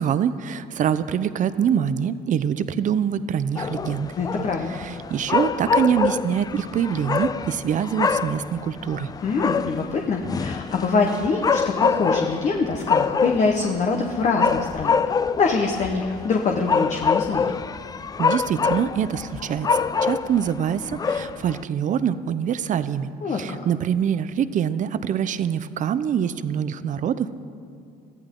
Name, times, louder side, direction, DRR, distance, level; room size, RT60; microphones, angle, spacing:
voice 1, 0.0-4.1 4.8-9.1 18.2-27.4, right 8 dB, 50° right, 13 dB, 0.7 m, -25 dB
sound 1, 3.6-21.6, left 5 dB, 20° left, 0.4 m, -26 dB
voice 2, 4.2-4.7 9.2-15.0 15.4-17.5 23.2-23.6, left 4 dB, 45° left, 2 dB, 1.2 m, -24 dB
22.0 x 14.0 x 3.8 m, 2.5 s
cardioid pair, 110°, 17 cm